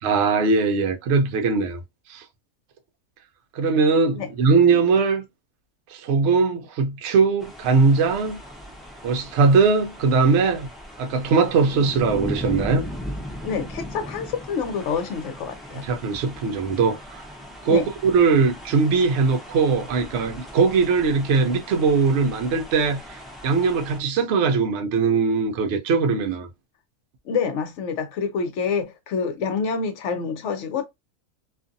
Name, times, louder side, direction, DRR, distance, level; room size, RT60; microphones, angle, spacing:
voice 1, 0.0-1.8 2.1-2.2 3.5-5.3 5.9-8.4 9.0-10.7 11.0-12.9 15.8-17.2 17.6-26.5, right 4 dB, 65° right, 0.8 m, -20 dB
sound 1, 7.4-24.0, equal, ahead, 0.4 m, -38 dB
voice 2, 13.4-15.9 17.7-17.8 27.3-30.8, left 6 dB, 65° left, 0.8 m, -27 dB
2.5 x 2.5 x 2.5 m
omnidirectional pair, 1.4 m